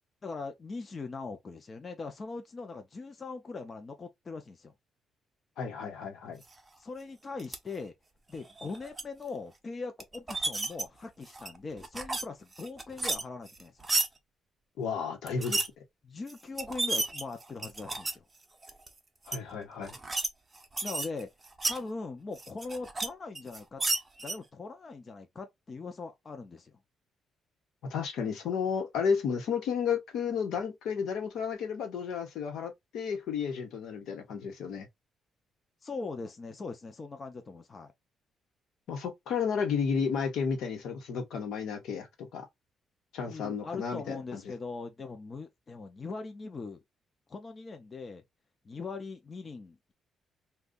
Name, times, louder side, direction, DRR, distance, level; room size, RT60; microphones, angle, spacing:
voice 1, 0.2-4.7 6.8-7.9 8.3-13.9 16.0-18.3 20.8-21.3 21.7-23.8 24.2-26.7 35.8-37.9 43.3-46.8 47.3-48.2 48.6-49.9, left 4 dB, 30° left, 0.6 m, -41 dB
voice 2, 5.6-6.4 14.8-15.6 19.3-19.9 27.9-34.9 38.9-42.5 43.1-44.4, left 6 dB, 80° left, 1.0 m, -32 dB
sound 1, 7.4-7.6 8.5-9.0 10.0-10.8 11.3-12.2 12.5-14.1 15.3-15.7 16.3-16.4 16.6-18.2 18.6-18.9 19.3-19.4 19.8-20.3 20.6-21.8 22.4-23.1 23.4-24.4, right 3 dB, 20° right, 0.6 m, -32 dB
2.5 x 2.3 x 3.7 m
cardioid pair, 115°, 0 cm